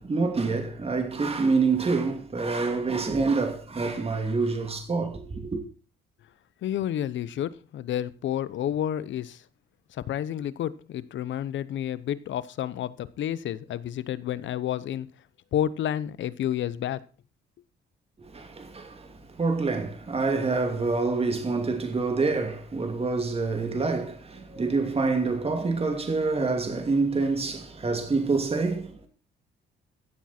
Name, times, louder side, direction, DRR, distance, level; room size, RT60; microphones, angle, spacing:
voice 1, 0.0-5.6 18.3-19.1 19.4-28.9, right 4 dB, 30° right, 2.6 m, -26 dB
voice 2, 6.6-9.4 10.1-15.1 15.5-17.0, left 11 dB, 70° left, 0.8 m, -30 dB
15.0 x 7.4 x 4.4 m
cardioid pair, 90°, 20 cm